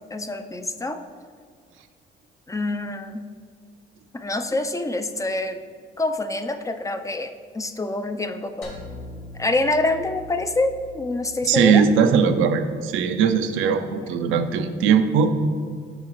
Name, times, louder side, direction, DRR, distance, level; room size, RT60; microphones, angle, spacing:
voice 1, 0.1-1.0 2.5-3.3 4.1-5.6 6.0-8.7 9.3-11.8, left 2 dB, 15° left, 8 dB, 0.4 m, -26 dB
sound 1, 8.6-13.0, right 1 dB, 80° left, 1.7 m, -42 dB
voice 2, 11.5-15.3, right 6 dB, 90° right, 8 dB, 0.5 m, -19 dB
7.8 x 5.6 x 3.0 m, 2.1 s
cardioid pair, 90°, 20 cm